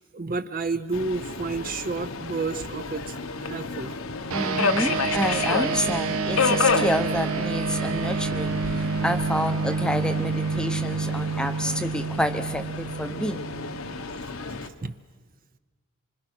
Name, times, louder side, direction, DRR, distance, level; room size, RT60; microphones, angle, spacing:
voice 1, 0.1-3.2 3.4-3.9 14.6-14.9, right 3 dB, 40° right, 11 dB, 0.6 m, -30 dB
Subway metro underground, 0.9-14.7, left 5 dB, 65° left, 1.0 m, -31 dB
voice 2, 4.3-13.4, equal, 5° left, 8 dB, 0.8 m, -29 dB
sound 1, 4.3-14.0, right 4 dB, 70° right, 1.1 m, -28 dB
25.5 x 25.0 x 6.1 m, 1.4 s
head